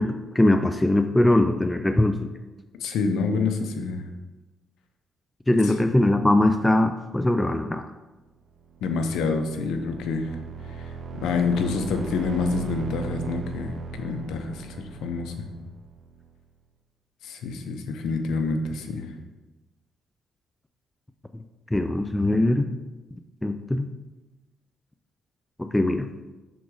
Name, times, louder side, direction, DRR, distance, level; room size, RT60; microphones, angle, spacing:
voice 1, 0.0-2.3 5.5-7.8 21.7-22.7 23.4-23.9 25.6-26.1, left 1 dB, 10° left, 7 dB, 0.4 m, -21 dB
voice 2, 2.8-4.1 5.6-5.7 8.8-10.4 10.8-10.9 11.2-15.5 17.2-19.1, left 4 dB, 85° left, 6 dB, 0.7 m, -27 dB
sound 1, 8.6-16.3, right 5 dB, 55° right, 0.6 m, -38 dB
6.0 x 4.0 x 4.7 m, 1.1 s
cardioid pair, 90°, 0 cm